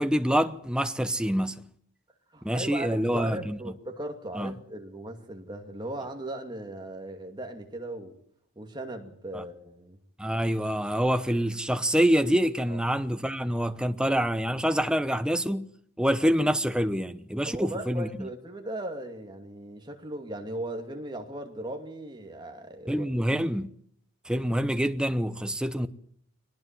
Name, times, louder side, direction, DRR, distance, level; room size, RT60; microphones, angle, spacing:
voice 1, 0.0-1.7 2.4-3.6 4.3-4.5 9.3-9.4 10.2-18.3 22.9-23.7 24.3-25.9, equal, 5° right, 0.9 m, -26 dB
voice 2, 2.3-8.2 8.6-10.0 12.7-12.8 17.4-23.1, right 1 dB, 20° right, 2.5 m, -38 dB
22.0 x 19.5 x 7.6 m
head